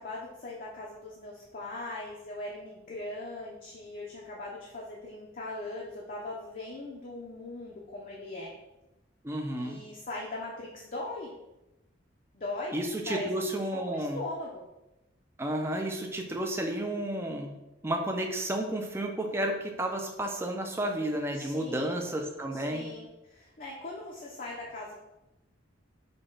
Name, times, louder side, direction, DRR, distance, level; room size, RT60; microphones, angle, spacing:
voice 1, 0.0-8.5 9.5-11.3 12.3-12.7 13.1-14.6 21.3-22.0 22.5-24.9, left 2 dB, 45° left, -3 dB, 0.6 m, -40 dB
voice 2, 9.2-9.8 12.7-14.2 15.4-17.5 17.8-22.9, right 1 dB, 15° right, 2 dB, 0.4 m, -32 dB
5.1 x 2.2 x 3.8 m, 0.95 s
head